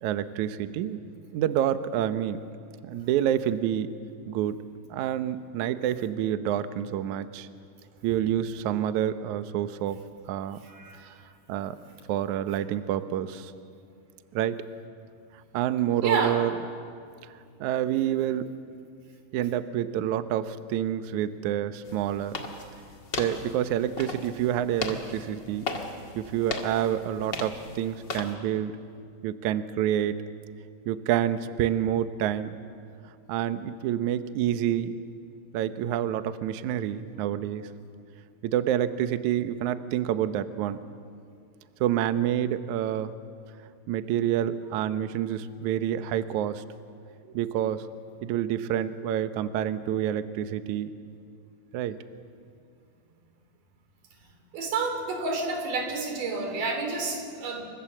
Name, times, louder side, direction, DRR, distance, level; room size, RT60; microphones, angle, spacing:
voice 1, 0.0-1.0 1.3-2.4 2.8-3.9 4.3-4.6 4.9-7.5 8.0-10.0 10.3-10.6 11.5-11.7 12.1-13.5 14.3-14.6 15.5-16.5 17.6-18.5 19.3-22.4 23.2-25.6 26.1-28.7 29.2-30.2 30.9-32.5 33.3-35.0 35.5-37.6 38.4-40.8 41.8-43.1 43.9-46.6 47.3-47.8 48.2-50.9 51.7-52.0, right 11 dB, 85° right, 10 dB, 1.7 m, -28 dB
voice 2, 10.6-11.0 16.0-16.4 54.5-57.6, right 4 dB, 55° right, 5 dB, 4.5 m, -29 dB
sound 1, 21.8-28.3, left 3 dB, 40° left, 1.6 m, -37 dB
28.5 x 24.5 x 7.4 m, 2.3 s
omnidirectional pair, 4.8 m